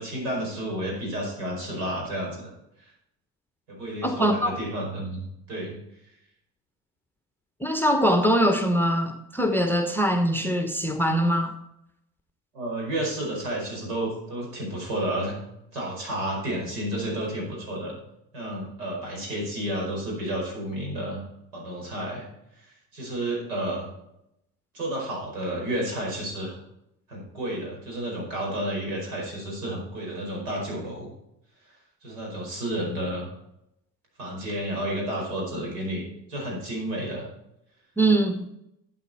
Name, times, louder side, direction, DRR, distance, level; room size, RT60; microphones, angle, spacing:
voice 1, 0.0-2.5 2.8-2.9 3.7-5.8 6.0-6.1 12.5-15.4 15.7-18.0 18.3-21.2 21.5-22.3 22.5-23.9 24.7-26.6 27.1-31.1 32.0-33.3 34.2-37.3, right 1 dB, 70° right, -1 dB, 5.0 m, -31 dB
voice 2, 4.0-4.5 7.6-11.5 38.0-38.4, right 1 dB, 5° left, 6 dB, 1.0 m, -22 dB
12.5 x 7.8 x 4.2 m, 0.82 s
figure-of-eight pair, 65°, 48 cm